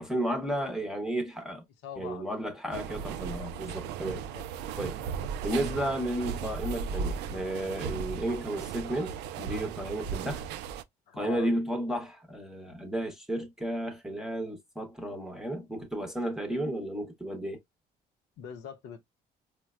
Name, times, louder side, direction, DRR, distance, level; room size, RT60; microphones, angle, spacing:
voice 1, 0.0-1.6 2.0-4.2 4.8-5.0 5.4-10.4 11.1-17.6, right 1 dB, 5° right, 0.7 m, -33 dB
voice 2, 1.8-2.3 4.0-4.4 5.0-5.3 11.1-11.5 18.4-19.0, left 8 dB, 85° left, 0.7 m, -43 dB
sound 1, 2.7-10.8, right 6 dB, 80° right, 0.4 m, -36 dB
4.5 x 2.1 x 2.4 m
cardioid pair, 110°, 17 cm